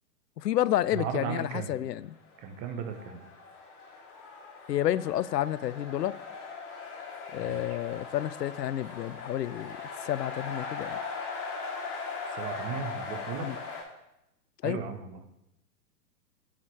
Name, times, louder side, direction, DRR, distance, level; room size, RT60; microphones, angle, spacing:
voice 1, 0.4-2.2 4.7-6.2 7.3-11.0 13.4-13.6 14.6-14.8, left 12 dB, 75° left, 0.5 m, -30 dB
voice 2, 0.9-1.8 2.4-3.2 7.5-7.8 12.4-13.6 14.6-15.2, right 7 dB, 15° right, 0.5 m, -36 dB
sound 1, 2.3-13.8, left 4 dB, 35° left, 3.2 m, -40 dB
7.2 x 5.0 x 5.9 m
figure-of-eight pair, 115°, 49 cm